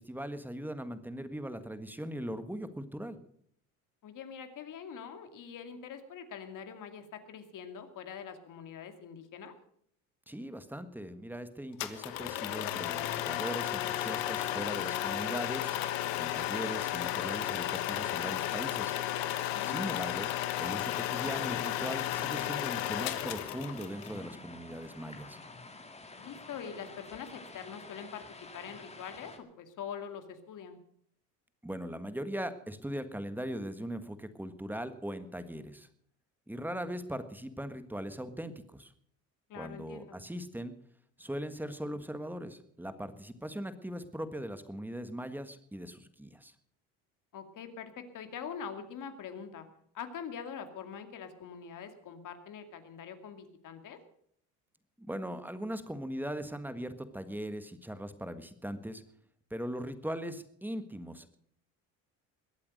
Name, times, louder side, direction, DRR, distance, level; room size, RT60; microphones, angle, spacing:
voice 1, 0.0-3.2 10.3-15.8 16.1-18.9 19.6-20.3 20.6-25.4 31.6-35.9 36.5-38.9 39.5-40.7 41.2-46.5 55.0-59.0 59.5-61.3, equal, 5° right, 11 dB, 1.5 m, -40 dB
voice 2, 4.0-9.5 19.5-20.0 26.2-28.2 28.5-30.8 39.5-40.1 47.3-49.7 49.9-54.0, left 7 dB, 55° left, 8 dB, 2.4 m, -44 dB
sound 1, 11.8-24.1, left 13 dB, 85° left, 1.4 m, -33 dB
sound 2, 20.0-29.4, left 3 dB, 15° left, 2.0 m, -49 dB
21.5 x 8.5 x 6.5 m, 0.66 s
supercardioid pair, 90°, 38 cm